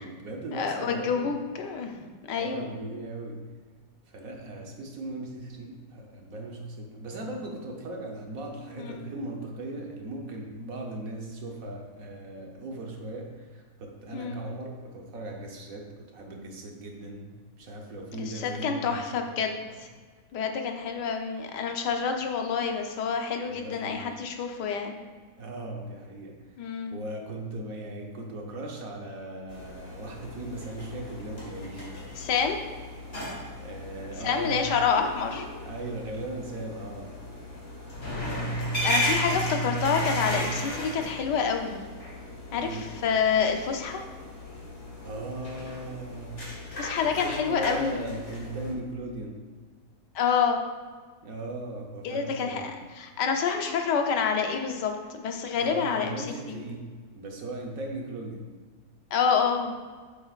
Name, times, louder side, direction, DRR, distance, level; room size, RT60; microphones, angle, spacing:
voice 1, 0.0-1.4 2.3-3.4 4.1-17.3 17.6-19.1 23.4-24.2 25.4-26.5 26.9-32.3 33.6-34.7 35.6-37.1 42.5-42.9 45.0-46.4 47.0-49.4 51.2-52.8 55.6-56.9 57.1-58.5, right 2 dB, 60° right, 1 dB, 1.3 m, -38 dB
voice 2, 0.5-2.7 8.8-9.1 14.1-14.4 18.1-19.9 20.3-25.0 26.6-27.0 32.2-32.6 34.2-35.5 38.8-41.8 42.5-44.0 46.7-48.1 50.1-50.6 52.0-56.6 59.1-59.7, left 6 dB, 85° left, 4 dB, 1.4 m, -28 dB
sound 1, 29.5-48.7, equal, 40° left, 2.0 m, -35 dB
8.4 x 7.3 x 2.4 m, 1.5 s
omnidirectional pair, 1.8 m